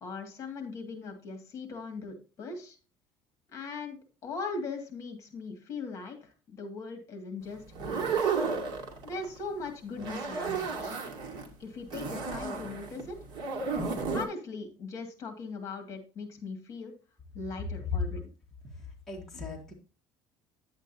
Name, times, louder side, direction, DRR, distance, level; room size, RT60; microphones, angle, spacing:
voice 1, 0.0-2.8 3.5-8.4 9.0-11.0 11.6-13.2 14.0-16.9 17.3-18.2, left 3 dB, 35° left, 5 dB, 2.0 m, -40 dB
sound 1, 7.7-9.4 9.9-11.5 11.9-14.3, right 5 dB, 50° right, 2.3 m, -32 dB
voice 2, 17.6-18.0 18.6-19.7, left 5 dB, 5° left, -3 dB, 1.7 m, -36 dB
9.8 x 8.2 x 2.7 m, 0.35 s
cardioid pair, 160°, 9 cm